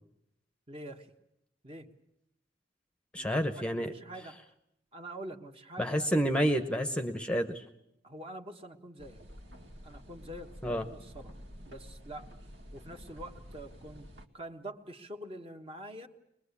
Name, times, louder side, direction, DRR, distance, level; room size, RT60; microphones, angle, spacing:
voice 1, 0.7-1.1 1.6-1.9 3.2-3.3 3.5-4.4 4.9-6.1 8.0-9.2 9.8-11.4 11.6-12.3 12.7-14.1 14.3-16.1, right 1 dB, 30° right, 5 dB, 1.5 m, -45 dB
voice 2, 3.1-3.9 5.8-7.6 10.6-10.8, equal, 5° left, 7 dB, 1.0 m, -29 dB
sound 1, 9.0-14.3, equal, 80° right, 2.1 m, -50 dB
23.0 x 21.5 x 8.4 m, 0.79 s
head